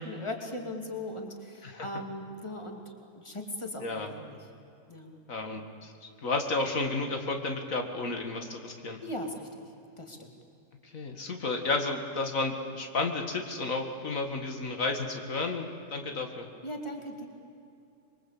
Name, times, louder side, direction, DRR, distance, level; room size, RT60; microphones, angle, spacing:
voice 1, 0.0-4.5 4.9-5.1 9.0-10.3 16.6-17.3, left 1 dB, 20° left, 3 dB, 2.8 m, -39 dB
voice 2, 5.3-9.0 10.8-16.5, left 3 dB, 85° left, 4 dB, 2.4 m, -32 dB
26.0 x 23.0 x 8.6 m, 2.6 s
omnidirectional pair, 1.4 m